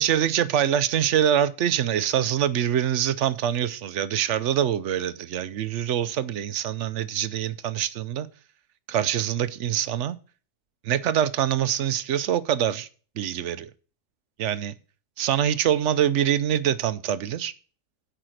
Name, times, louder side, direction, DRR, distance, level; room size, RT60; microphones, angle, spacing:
voice 1, 0.0-8.3 8.9-10.2 10.8-12.9 13.2-13.7 14.4-14.7 15.2-17.5, right 10 dB, 70° right, 0.9 m, -24 dB
8.7 x 5.0 x 6.4 m
omnidirectional pair, 1.4 m